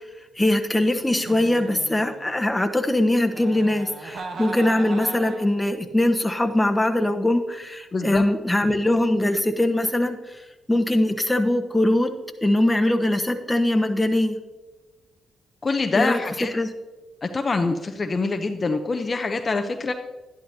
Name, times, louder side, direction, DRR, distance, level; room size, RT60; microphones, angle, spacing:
voice 1, 0.4-10.4 10.7-12.1 12.4-14.4 15.9-16.2 16.5-16.7, left 1 dB, 15° left, 6 dB, 1.1 m, -22 dB
Giggle, 1.0-2.5 3.3-5.6, right 3 dB, 65° right, 1.1 m, -38 dB
voice 2, 7.9-8.2 15.6-16.5 17.2-19.9, left 3 dB, 40° left, 6 dB, 0.7 m, -25 dB
11.5 x 11.0 x 2.8 m, 1.1 s
hypercardioid pair, 45°, 0 cm